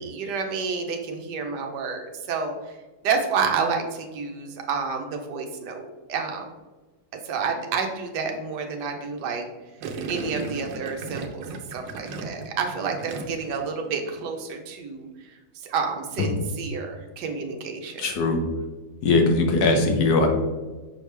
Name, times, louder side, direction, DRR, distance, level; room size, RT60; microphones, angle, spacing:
voice 1, 0.0-2.5 3.0-6.4 7.2-9.4 10.1-11.4 11.7-15.1 15.5-18.1, right 5 dB, 70° right, 3 dB, 1.4 m, -29 dB
Gurgling, 9.8-13.6 13.9-14.3, right 3 dB, 85° right, 1.4 m, -35 dB
voice 2, 18.0-18.4 19.0-20.3, left 3 dB, 65° left, 3 dB, 1.4 m, -20 dB
6.2 x 4.7 x 3.3 m, 1.2 s
omnidirectional pair, 1.9 m